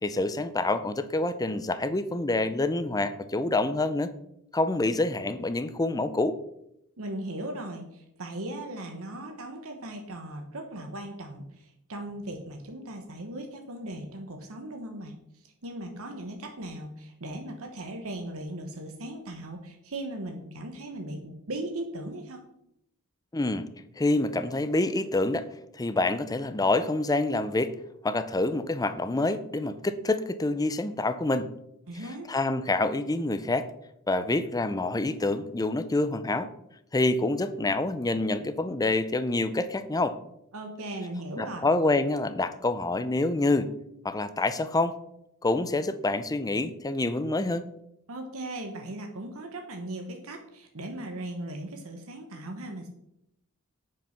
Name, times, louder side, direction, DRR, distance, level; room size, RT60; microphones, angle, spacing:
voice 1, 0.0-4.1 4.5-6.4 23.3-23.7 24.0-25.5 25.8-27.7 28.0-31.5 32.3-33.7 34.1-36.5 36.9-40.2 41.4-43.7 44.0-45.0 45.4-47.7, left 2 dB, 15° left, 12 dB, 0.5 m, -27 dB
voice 2, 7.0-15.1 15.6-22.4 31.9-32.3 40.5-41.7 48.1-52.9, right 1 dB, 70° right, 4 dB, 1.2 m, -38 dB
8.9 x 5.4 x 5.9 m, 0.79 s
head